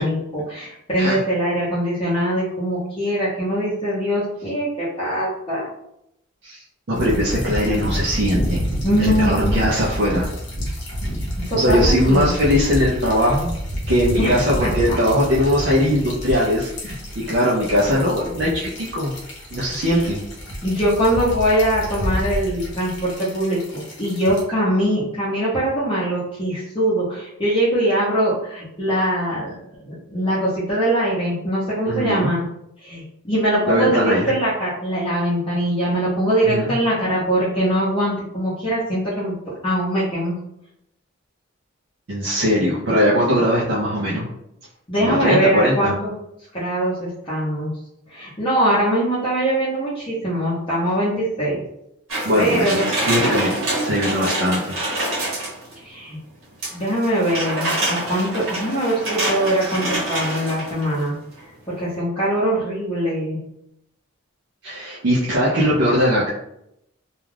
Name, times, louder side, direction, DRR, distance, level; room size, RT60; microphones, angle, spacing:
voice 1, 0.0-5.7 8.8-9.6 11.4-12.3 14.2-14.4 14.6-15.0 19.9-20.0 20.6-29.5 29.8-32.4 32.8-39.3 39.6-40.3 44.9-46.1 46.5-47.7 48.1-51.6 52.4-52.9 55.8-56.2 56.7-61.2 61.8-63.4, right 1 dB, 25° left, -11 dB, 0.7 m, -22 dB
voice 2, 6.4-8.6 9.0-10.3 10.7-10.8 11.5-13.5 13.9-19.1 19.5-20.2 31.9-32.4 33.7-34.3 36.4-36.7 42.1-44.3 45.0-46.0 52.2-53.5 53.8-54.8 64.6-66.3, equal, 50° right, -5 dB, 0.5 m, -20 dB
sound 1, 6.9-24.4, equal, 55° left, 0.8 m, -28 dB
sound 2, 52.1-55.8 56.6-61.0 61.4-61.5, right 1 dB, 75° right, 1.0 m, -26 dB
2.3 x 2.3 x 3.2 m, 0.79 s
head